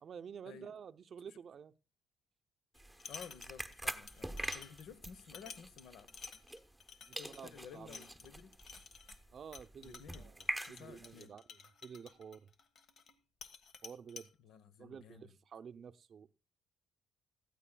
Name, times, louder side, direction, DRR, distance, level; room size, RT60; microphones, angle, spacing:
voice 1, 0.0-1.7 4.4-4.6 7.1-8.0 9.3-12.5 13.8-14.3 14.8-16.3, right 7 dB, 55° right, 0.6 m, -51 dB
sound 1, 2.7-3.8 4.1-13.1 13.4-14.3, left 5 dB, 65° left, 1.4 m, -52 dB
sound 2, 2.7-6.9 7.1-11.2, right 1 dB, ahead, 0.9 m, -45 dB
voice 2, 3.1-6.1 7.1-8.5 9.8-10.3 10.7-11.3 14.4-15.3, left 7 dB, 80° left, 0.9 m, -54 dB
18.5 x 13.5 x 2.3 m
cardioid pair, 90°, 0 cm